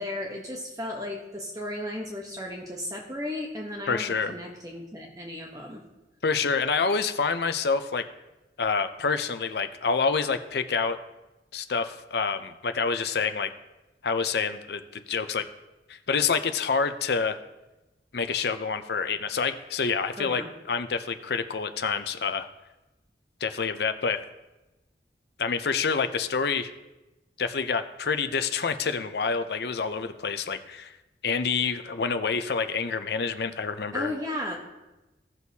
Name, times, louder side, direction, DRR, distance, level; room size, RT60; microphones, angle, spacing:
voice 1, 0.0-5.8 20.2-20.5 33.9-34.6, left 1 dB, 20° right, -1 dB, 0.9 m, -35 dB
voice 2, 3.9-4.3 6.2-8.0 8.6-11.0 11.5-13.5 14.0-15.5 15.9-17.4 18.1-20.4 20.7-22.5 23.4-24.2 25.4-26.7 27.4-30.9 31.2-34.1, left 5 dB, 65° left, 10 dB, 0.6 m, -27 dB
16.5 x 6.3 x 2.8 m, 1.0 s
head